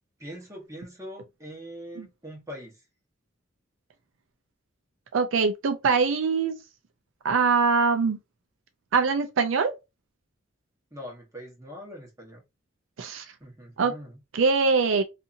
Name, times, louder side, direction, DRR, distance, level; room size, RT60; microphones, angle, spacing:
voice 1, 0.2-2.8 10.9-12.4 13.4-14.2, equal, 15° right, 1.1 m, -42 dB
voice 2, 5.1-6.5 7.2-8.2 8.9-9.7 13.0-13.3 13.8-13.9 14.3-15.0, right 4 dB, 75° right, 0.4 m, -23 dB
2.7 x 2.5 x 2.5 m
head